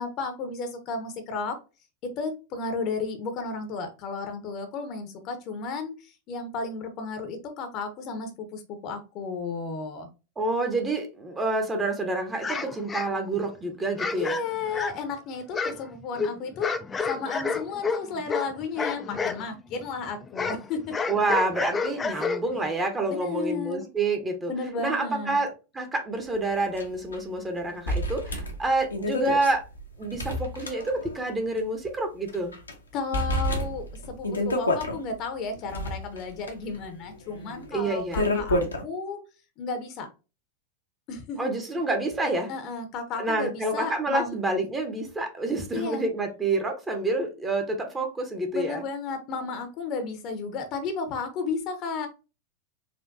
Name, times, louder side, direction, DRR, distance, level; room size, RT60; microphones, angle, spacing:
voice 1, 0.0-1.6 2.2-10.1 14.2-16.7 17.1-21.0 22.1-22.3 23.1-23.9 24.5-25.4 32.9-39.2 39.6-40.1 41.1-41.5 42.5-44.4 45.7-46.0 48.5-52.1, left 4 dB, 40° left, 7 dB, 0.8 m, -33 dB
voice 2, 10.4-14.3 21.1-24.5 24.8-29.6 30.0-32.5 37.7-38.3 41.4-42.5 43.2-48.8, right 2 dB, 15° right, 4 dB, 0.9 m, -28 dB
sound 1, 12.4-13.5 14.0-15.1 15.5-19.4 19.7-22.7, left 5 dB, 15° left, 0.3 m, -30 dB
sound 2, 26.8-26.9 27.1-27.2 27.9-31.3 31.6-31.7 32.3-32.7 33.1-35.0 35.5-38.8, left 1 dB, 75° left, 0.8 m, -29 dB
4.4 x 2.5 x 2.6 m, 0.30 s
figure-of-eight pair, 90°, 0 cm